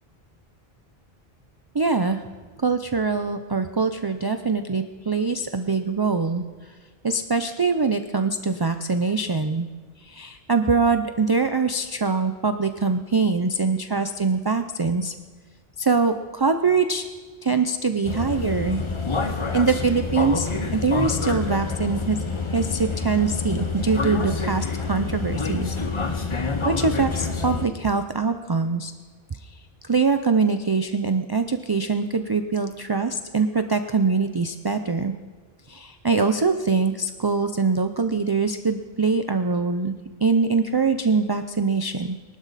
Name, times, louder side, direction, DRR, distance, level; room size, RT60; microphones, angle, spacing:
voice 1, 1.7-2.2 2.6-6.4 7.0-9.7 10.0-15.1 15.8-17.1 17.4-18.8 19.5-22.2 22.5-26.3 26.6-28.9 29.3-35.1 35.7-39.9 40.2-42.2, right 4 dB, 30° right, 8 dB, 0.5 m, -23 dB
sound 1, 18.0-27.7, left 4 dB, 30° left, 1.0 m, -27 dB
23.0 x 12.5 x 4.1 m, 1.4 s
omnidirectional pair, 1.0 m